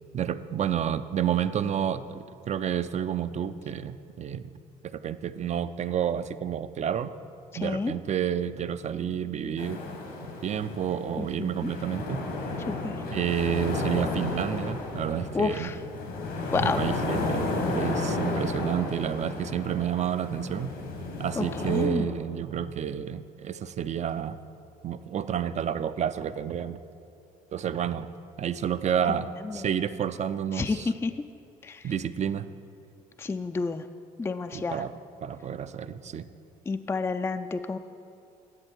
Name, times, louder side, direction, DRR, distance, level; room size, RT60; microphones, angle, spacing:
voice 1, 0.1-4.5 4.8-7.1 7.5-9.8 10.4-12.2 13.1-15.7 16.5-20.7 21.2-24.4 24.8-26.8 27.5-28.1 28.4-30.9 31.8-32.5 34.5-36.3, right 9 dB, 40° right, 13 dB, 0.5 m, -30 dB
voice 2, 7.6-7.9 11.2-11.5 12.7-12.9 15.3-15.8 16.5-16.8 21.4-22.1 30.5-31.1 31.6-31.8 33.2-33.8 34.2-34.8 36.7-37.8, left 4 dB, 15° left, 8 dB, 0.3 m, -29 dB
sound 1, 9.6-21.9, left 2 dB, 80° left, 1.6 m, -32 dB
11.0 x 7.6 x 4.6 m, 2.6 s
supercardioid pair, 70°, 17 cm